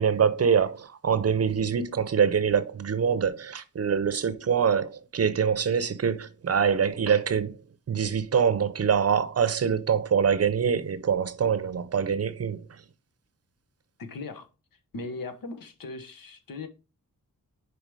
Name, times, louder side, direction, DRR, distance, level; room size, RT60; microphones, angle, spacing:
voice 1, 0.0-7.6 7.9-12.6, right 7 dB, 45° right, 0.6 m, -24 dB
voice 2, 14.0-14.5 14.9-16.7, left 3 dB, 75° left, 1.2 m, -38 dB
5.1 x 4.8 x 4.7 m
wide cardioid pair, 125°, 34 cm